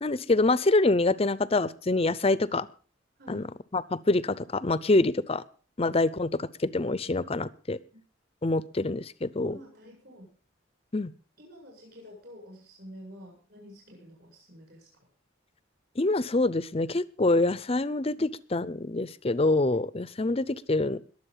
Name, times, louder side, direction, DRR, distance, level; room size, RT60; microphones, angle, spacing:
voice 1, 0.0-2.7 3.3-3.5 3.7-5.4 5.8-7.8 8.4-9.6 10.9-11.1 16.0-21.0, left 2 dB, 30° left, 17 dB, 0.6 m, -26 dB
voice 2, 9.5-10.3 11.4-14.9 18.2-18.3, equal, 50° right, -1 dB, 7.7 m, -49 dB
21.5 x 7.6 x 5.6 m, 0.41 s
head